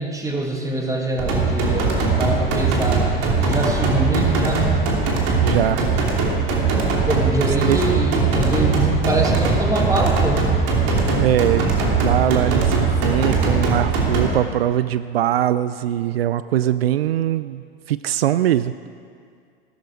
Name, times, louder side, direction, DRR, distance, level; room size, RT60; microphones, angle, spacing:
voice 1, 0.0-3.1 3.4-4.7 7.1-10.4, right 2 dB, 10° right, 1 dB, 2.3 m, -24 dB
sound 1, 1.2-14.2, right 4 dB, 55° right, 3.0 m, -20 dB
voice 2, 5.4-5.8 7.6-7.8 11.2-11.6 12.0-18.7, right 12 dB, 80° right, 14 dB, 0.5 m, -21 dB
15.5 x 13.0 x 4.9 m, 2.2 s
hypercardioid pair, 85°, 30 cm